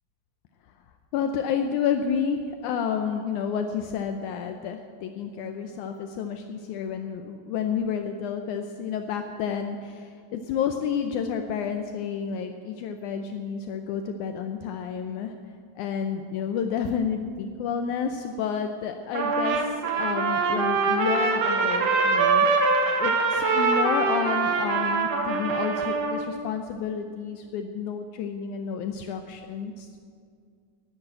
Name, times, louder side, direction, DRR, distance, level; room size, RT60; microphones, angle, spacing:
voice 1, 1.1-15.3 15.8-22.5 23.0-29.9, left 7 dB, 75° left, 6 dB, 2.0 m, -30 dB
Trumpet, 19.1-26.3, right 4 dB, 60° right, 2.1 m, -23 dB
10.5 x 10.5 x 8.7 m, 2.2 s
omnidirectional pair, 3.7 m